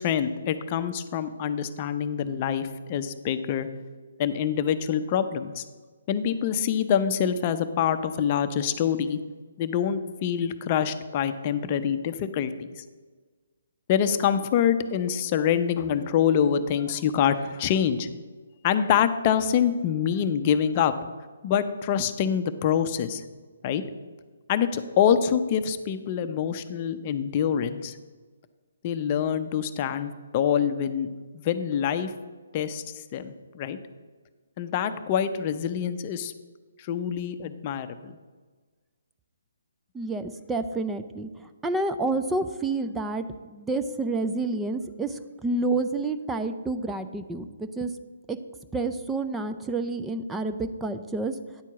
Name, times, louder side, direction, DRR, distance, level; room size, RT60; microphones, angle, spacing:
voice 1, 0.0-3.7 4.2-5.6 6.1-9.2 9.6-12.8 13.9-18.1 18.6-20.9 21.4-23.2 23.6-23.8 24.5-28.0 28.8-31.1 31.3-32.1 32.5-33.8 34.6-36.3 36.8-38.1, left 8 dB, 35° left, 10 dB, 0.6 m, -25 dB
voice 2, 39.9-41.3 41.6-47.9 48.3-48.4 48.7-51.4, right 2 dB, 5° right, 8 dB, 0.4 m, -29 dB
9.5 x 4.5 x 7.1 m, 1.4 s
figure-of-eight pair, 145°, 0 cm